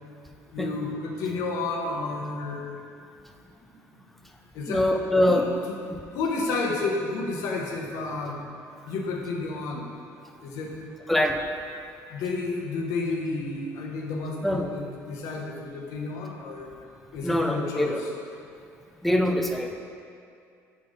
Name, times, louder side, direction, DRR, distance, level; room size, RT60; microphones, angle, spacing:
voice 1, 0.5-2.8 4.5-4.9 5.2-5.8 6.1-8.5 8.8-9.9 10.4-10.8 12.1-16.7 17.1-18.1, left 3 dB, 65° left, 0 dB, 0.9 m, -31 dB
voice 2, 4.7-5.5 5.9-6.0 11.1-11.4 14.4-14.7 17.2-18.0 19.0-19.7, left 1 dB, 5° left, 3 dB, 0.4 m, -23 dB
5.5 x 3.8 x 5.1 m, 2.4 s
cardioid pair, 155°, 6 cm